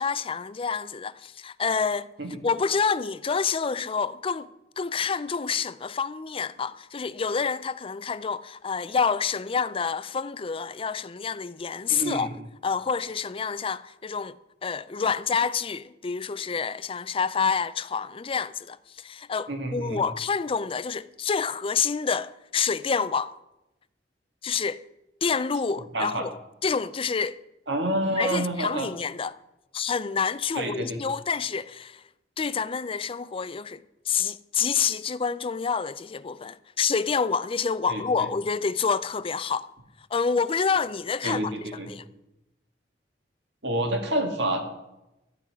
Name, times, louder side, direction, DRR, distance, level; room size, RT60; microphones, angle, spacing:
voice 1, 0.0-2.1 2.4-4.5 4.8-12.3 12.6-14.4 14.6-23.3 24.4-24.8 25.2-26.4 26.6-27.4 28.1-29.4 29.7-32.0 32.4-39.7 40.1-41.5 41.9-42.0, left 5 dB, 30° left, 0.4 m, -28 dB
voice 2, 11.9-12.3 19.5-20.0 25.9-26.3 27.7-28.9 30.5-31.0 37.9-38.3 41.2-41.9 43.6-44.6, right 1 dB, 80° right, 2.2 m, -28 dB
14.0 x 5.6 x 9.7 m
head